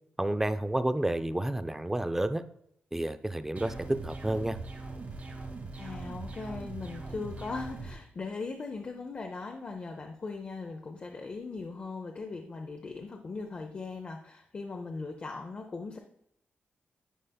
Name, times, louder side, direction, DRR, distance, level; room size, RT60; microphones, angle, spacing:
voice 1, 0.2-2.4 2.9-3.7 4.0-4.6, right 1 dB, 10° right, 10 dB, 0.4 m, -30 dB
sound 1, 3.6-7.9, right 3 dB, 45° right, 2.0 m, -41 dB
voice 2, 5.8-16.0, left 4 dB, 35° left, 3 dB, 0.6 m, -39 dB
10.0 x 5.4 x 2.3 m, 0.72 s
wide cardioid pair, 135°, 4 cm